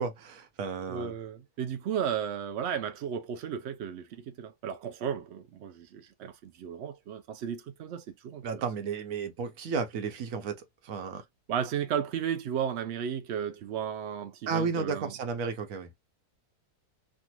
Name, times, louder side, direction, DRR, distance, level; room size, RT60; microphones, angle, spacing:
voice 1, 0.0-1.1 8.4-11.2 14.5-15.9, right 5 dB, 60° right, 1.1 m, -33 dB
voice 2, 0.9-8.4 11.5-15.1, right 8 dB, 80° right, 0.6 m, -34 dB
3.3 x 2.4 x 2.9 m
omnidirectional pair, 1.7 m